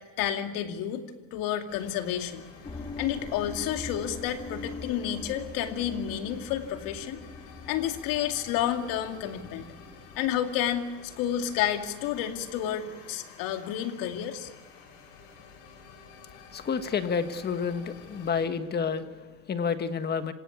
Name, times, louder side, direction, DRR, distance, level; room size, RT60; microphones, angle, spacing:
voice 1, 0.2-1.0 1.3-2.4 3.0-7.2 7.7-9.7 10.2-14.5, left 10 dB, 70° left, 6 dB, 2.6 m, -30 dB
sound 1, 1.7-18.5, left 5 dB, 85° left, 5.8 m, -50 dB
sound 2, 2.6-10.2, left 3 dB, 10° left, 1.5 m, -42 dB
voice 2, 16.5-20.3, left 6 dB, 30° left, 9 dB, 1.6 m, -30 dB
27.0 x 18.0 x 8.5 m, 1.3 s
cardioid pair, 135°, 35 cm